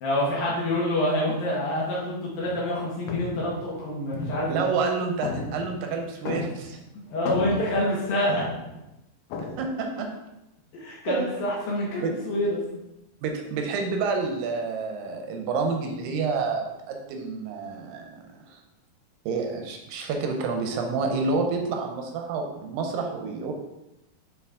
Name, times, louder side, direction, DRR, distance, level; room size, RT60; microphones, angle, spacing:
voice 1, 0.0-4.7 6.9-8.5 10.7-12.6, left 1 dB, 70° left, -6 dB, 3.0 m, -27 dB
sound 1, 2.4-2.7 3.1-4.9 5.2-6.8 7.1-8.8 9.3-9.6, left 4 dB, 85° left, 1.8 m, -34 dB
voice 2, 4.5-6.8 9.6-10.1 11.1-11.4 12.0-12.1 13.2-18.1 18.5-18.6 19.3-23.5, right 4 dB, 75° right, 3 dB, 2.2 m, -29 dB
8.4 x 3.9 x 3.6 m, 0.91 s
omnidirectional pair, 4.6 m